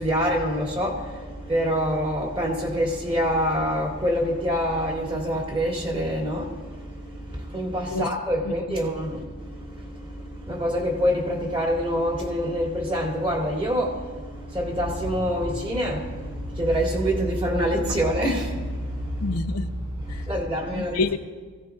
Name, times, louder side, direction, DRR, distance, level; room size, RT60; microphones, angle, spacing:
voice 1, 0.0-19.3 20.1-21.0, equal, 25° right, 2.8 m, -26 dB
voice 2, 8.4-8.8 19.2-19.7 20.1-20.2 20.7-21.2, left 3 dB, 90° left, 0.8 m, -28 dB
sound 1, 14.3-20.4, equal, 75° right, 5.7 m, -32 dB
24.5 x 17.0 x 2.4 m
head